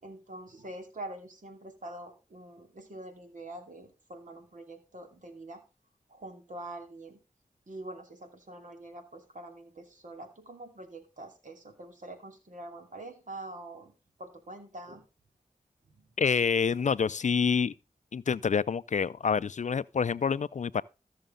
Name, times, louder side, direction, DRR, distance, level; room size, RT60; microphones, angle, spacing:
voice 1, 0.0-5.6 6.1-7.2 7.7-13.9 14.2-15.0 15.9-16.1, right 1 dB, 65° right, 2.7 m, -45 dB
voice 2, 16.2-17.7 18.1-20.8, left 6 dB, 60° left, 0.4 m, -27 dB
14.0 x 6.6 x 3.8 m
cardioid pair, 55°, 14 cm